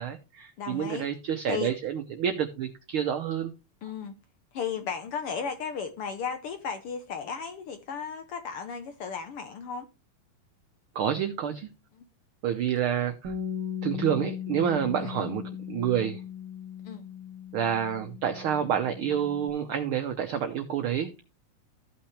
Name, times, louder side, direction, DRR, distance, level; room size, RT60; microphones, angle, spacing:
voice 1, 0.0-3.5 10.9-11.7 12.4-13.3 13.8-15.4 15.7-16.2 17.5-21.2, right 9 dB, 80° right, 1.2 m, -28 dB
voice 2, 0.6-1.1 1.5-1.7 3.8-4.1 4.5-9.9 11.9-12.0 15.0-15.2 16.8-17.0, left 6 dB, 70° left, 1.4 m, -35 dB
Bass guitar, 13.2-19.5, left 8 dB, 60° right, 1.6 m, -38 dB
14.5 x 5.8 x 3.2 m
omnidirectional pair, 3.3 m